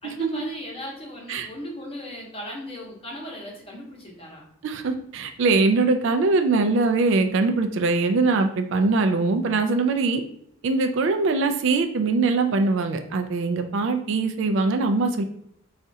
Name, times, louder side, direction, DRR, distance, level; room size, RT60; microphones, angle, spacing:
voice 1, 0.0-4.5, equal, 25° left, -2 dB, 0.8 m, -37 dB
voice 2, 4.6-10.2 10.6-15.2, right 3 dB, 60° right, 6 dB, 0.3 m, -22 dB
4.2 x 2.4 x 2.6 m, 0.70 s
head